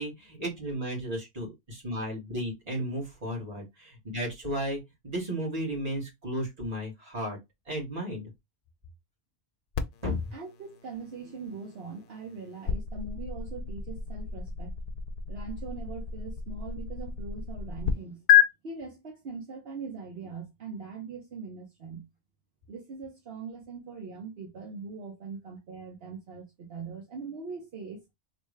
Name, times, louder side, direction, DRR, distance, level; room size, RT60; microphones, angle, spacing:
voice 1, 0.0-7.4 7.7-8.3 10.0-10.2, equal, 35° right, 1.7 m, -34 dB
sound 1, 9.7-17.9 18.3-18.4, left 10 dB, 60° left, 0.7 m, -30 dB
voice 2, 10.3-14.8 15.3-18.2 18.6-22.1 22.7-28.1, right 4 dB, 70° right, 1.0 m, -41 dB
3.3 x 2.6 x 3.2 m
omnidirectional pair, 1.1 m